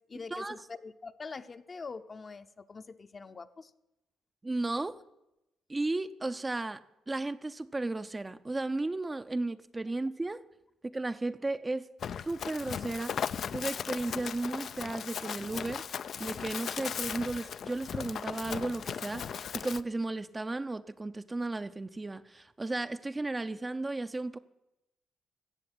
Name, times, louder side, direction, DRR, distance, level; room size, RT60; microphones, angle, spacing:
voice 1, 0.1-3.7, left 4 dB, 35° left, 0.8 m, -44 dB
voice 2, 4.4-5.0 5.7-10.4 10.8-11.9 12.2-13.2 13.5-24.4, right 2 dB, 20° right, 0.6 m, -34 dB
Run, 12.0-19.8, left 8 dB, 60° left, 0.5 m, -37 dB
16.0 x 6.9 x 9.8 m
cardioid pair, 90°, 0 cm